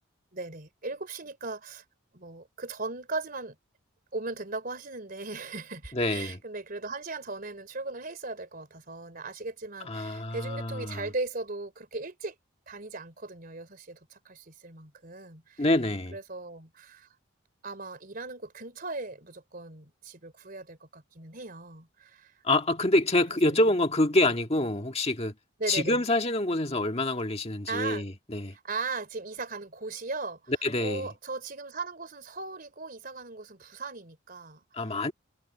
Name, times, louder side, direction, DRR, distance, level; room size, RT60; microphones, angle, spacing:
voice 1, 0.3-1.8 2.1-3.6 4.1-12.4 12.7-15.7 16.1-17.1 17.6-22.3 23.5-23.6 24.2-24.3 25.6-26.0 27.7-28.0 28.5-30.5 30.8-34.6, right 3 dB, 45° right, 3.5 m, -38 dB
voice 2, 5.9-6.4 9.9-11.0 15.6-16.2 22.4-25.3 25.7-28.5 30.6-31.1 34.7-35.1, left 1 dB, 30° left, 1.7 m, -26 dB
head